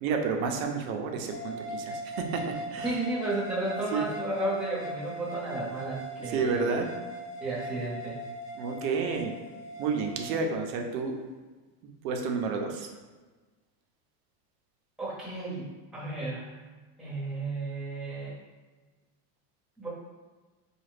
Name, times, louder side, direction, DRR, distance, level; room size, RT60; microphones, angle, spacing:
voice 1, 0.0-3.0 3.9-4.1 6.3-6.9 8.5-9.3 9.8-11.2 12.0-12.9, right 5 dB, 65° right, 3 dB, 0.7 m, -30 dB
sound 1, 1.3-10.3, right 1 dB, 80° left, 1.0 m, -40 dB
voice 2, 2.8-6.8 7.4-8.2 15.0-16.6 17.0-18.3 19.8-19.9, right 2 dB, ahead, -9 dB, 1.0 m, -33 dB
4.7 x 2.4 x 3.2 m, 1.3 s
supercardioid pair, 155°, 46 cm